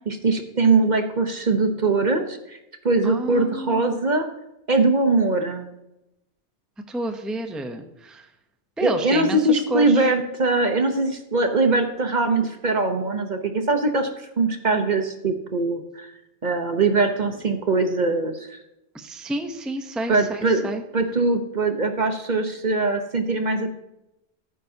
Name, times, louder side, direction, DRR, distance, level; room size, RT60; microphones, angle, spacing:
voice 1, 0.1-2.6 2.8-4.3 4.7-5.7 8.8-16.1 16.4-18.6 20.1-23.7, right 3 dB, 45° right, 6 dB, 1.1 m, -22 dB
voice 2, 3.0-3.9 6.9-8.3 8.8-10.1 18.9-20.8, right 1 dB, ahead, 5 dB, 0.7 m, -30 dB
15.0 x 9.4 x 2.8 m, 0.87 s
omnidirectional pair, 1.2 m